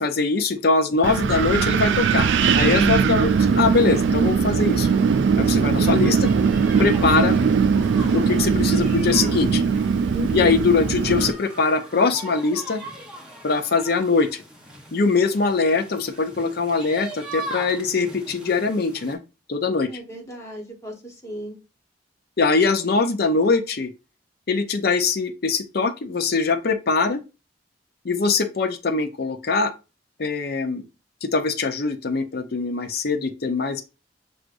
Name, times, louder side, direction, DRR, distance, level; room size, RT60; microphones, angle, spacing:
voice 1, 0.0-4.9 5.4-6.3 6.8-7.4 8.1-9.6 10.3-12.8 13.4-14.3 14.9-19.2 19.5-19.9 22.4-23.9 24.5-27.2 28.0-29.7 30.2-30.9 31.2-33.8, left 4 dB, 60° left, 0.6 m, -22 dB
Wind, 1.0-11.3, right 6 dB, 80° right, 0.3 m, -20 dB
sound 1, 3.3-19.1, right 1 dB, 5° right, 1.0 m, -40 dB
voice 2, 10.1-10.7 19.9-21.6, equal, 15° left, 1.3 m, -36 dB
6.0 x 2.5 x 2.5 m
head